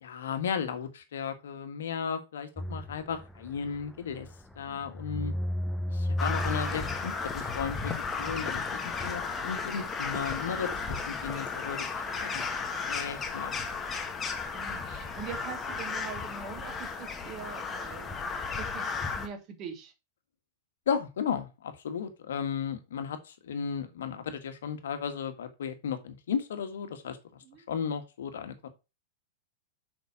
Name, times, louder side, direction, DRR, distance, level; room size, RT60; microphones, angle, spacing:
voice 1, 0.0-4.3 4.6-5.3 5.9-12.4 12.9-13.5 20.9-27.2 27.7-28.7, left 7 dB, 65° left, 9 dB, 1.6 m, -35 dB
sound 1, 2.6-9.2, equal, 5° left, 0.9 m, -35 dB
voice 2, 4.6-5.0 9.2-9.4 13.3-13.7 14.5-18.2 18.5-18.9 19.1-19.9 27.4-27.6, right 7 dB, 35° right, 6 dB, 2.4 m, -43 dB
Crow, 6.2-19.3, left 5 dB, 20° left, 1.7 m, -34 dB
7.0 x 6.0 x 4.5 m, 0.27 s
figure-of-eight pair, 95°, 0 cm